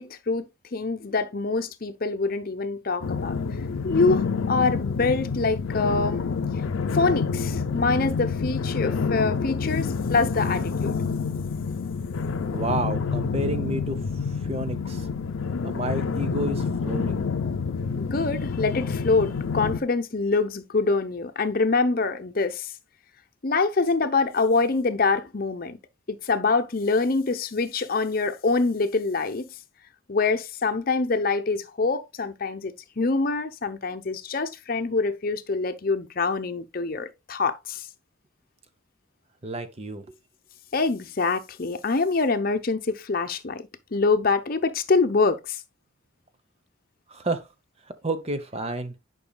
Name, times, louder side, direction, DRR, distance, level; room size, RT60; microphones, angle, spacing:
voice 1, 0.0-3.4 3.8-6.4 6.9-11.0 18.0-22.7 23.4-25.8 26.1-29.5 30.1-37.9 40.7-45.6, left 3 dB, 45° left, 0.8 m, -25 dB
sound 1, 3.0-19.8, left 5 dB, 80° left, 0.5 m, -28 dB
voice 2, 12.5-14.0 14.4-15.1 15.6-17.2 39.4-40.2 47.1-47.4 48.0-48.9, right 1 dB, 30° right, 0.8 m, -30 dB
10.0 x 5.4 x 2.3 m
head